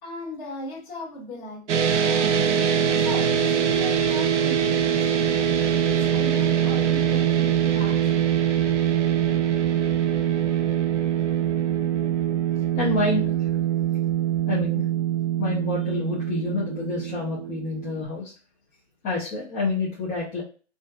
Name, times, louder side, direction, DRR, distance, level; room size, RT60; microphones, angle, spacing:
voice 1, 0.0-1.7 2.0-2.5 3.0-5.3 5.8-8.2, left 1 dB, 45° left, 1.5 m, -38 dB
sound 1, 1.7-18.0, right 9 dB, 90° right, 0.6 m, -23 dB
voice 2, 12.8-13.3 14.5-14.8 15.4-18.3 19.0-20.4, left 3 dB, 25° left, 0.7 m, -28 dB
2.6 x 2.4 x 2.2 m
hypercardioid pair, 130°, 35 cm